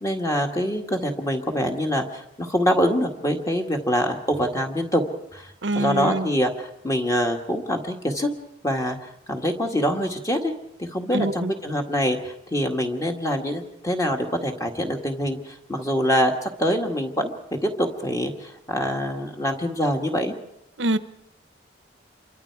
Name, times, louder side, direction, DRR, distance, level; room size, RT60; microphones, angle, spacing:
voice 1, 0.0-5.0 5.3-5.5 5.8-8.3 8.6-10.5 10.8-17.3 17.6-20.3, equal, 20° left, 3 dB, 1.9 m, -25 dB
voice 2, 5.6-6.3 11.1-11.5 20.8-21.0, right 2 dB, 75° right, 12 dB, 0.9 m, -24 dB
28.5 x 24.0 x 4.8 m, 0.82 s
head